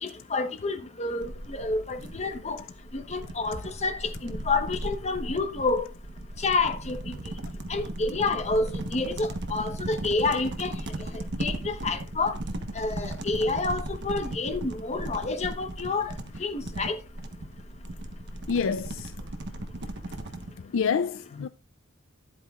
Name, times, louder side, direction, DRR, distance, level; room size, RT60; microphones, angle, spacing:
voice 1, 0.0-2.6 2.9-5.9 6.4-7.2 7.7-12.4 12.7-16.1 16.4-17.0, left 3 dB, 30° left, 1.1 m, -29 dB
sound 1, 1.2-20.5, right 1 dB, 55° right, 1.1 m, -37 dB
voice 2, 18.5-19.1 20.7-21.5, left 6 dB, 65° left, 0.4 m, -27 dB
12.0 x 8.5 x 2.4 m
head